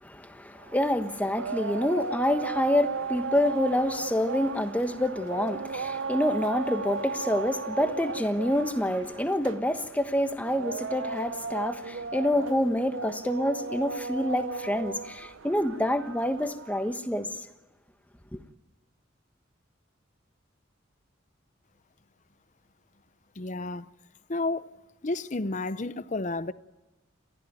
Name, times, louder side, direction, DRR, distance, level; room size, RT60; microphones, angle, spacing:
voice 1, 0.0-17.5 18.3-18.4, left 1 dB, 5° left, 1.2 m, -27 dB
sound 1, 0.6-17.0, right 4 dB, 70° right, 0.9 m, -36 dB
voice 2, 23.4-23.9 24.3-24.7 25.0-26.5, left 2 dB, 35° left, 0.7 m, -31 dB
28.5 x 15.0 x 9.1 m
head